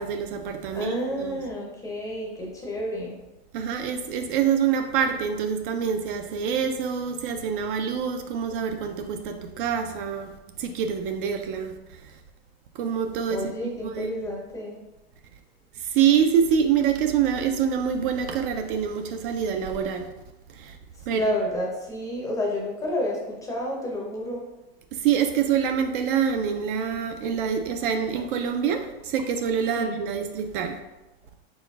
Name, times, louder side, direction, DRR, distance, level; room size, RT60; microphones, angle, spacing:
voice 1, 0.0-1.4 3.5-10.3 10.6-11.7 12.8-13.5 13.8-14.1 15.9-20.1 20.6-20.8 21.1-21.3 24.9-30.8, right 7 dB, 55° right, 6 dB, 0.5 m, -25 dB
voice 2, 0.7-3.2 13.3-14.8 21.1-24.5 29.7-30.0, left 1 dB, 10° left, -2 dB, 0.6 m, -30 dB
4.1 x 3.9 x 2.3 m, 1.0 s
supercardioid pair, 150°, 31 cm